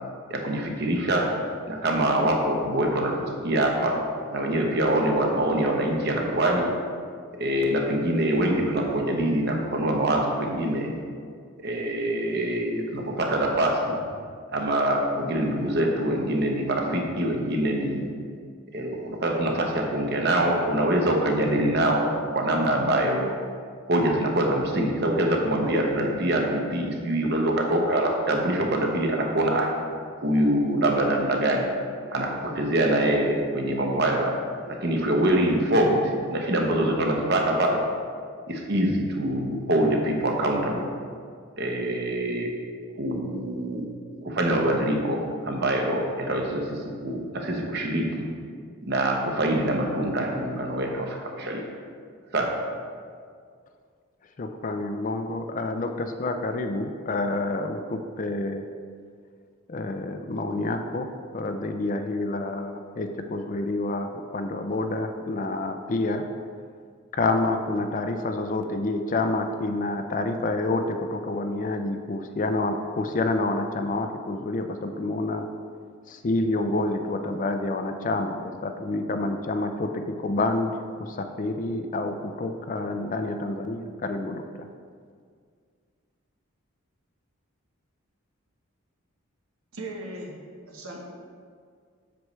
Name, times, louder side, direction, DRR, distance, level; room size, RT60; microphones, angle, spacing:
voice 1, 0.3-1.3 1.7-4.0 4.3-6.7 7.4-10.9 11.6-13.9 14.5-18.0 18.7-22.1 22.3-23.3 23.9-29.7 30.2-31.7 32.1-34.3 34.7-37.8 38.5-40.9 41.6-42.5 43.0-43.8 44.2-48.3 48.9-51.6 52.3-52.5, right 1 dB, 50° right, 1 dB, 1.0 m, -24 dB
voice 2, 54.4-58.6 59.7-61.1 61.3-66.2 67.1-75.5 76.1-80.7 81.0-84.4, left 2 dB, 35° left, 6 dB, 0.4 m, -28 dB
voice 3, 89.7-90.3 90.7-91.0, right 1 dB, 75° right, -1 dB, 1.2 m, -37 dB
7.8 x 6.9 x 3.2 m, 2.1 s
head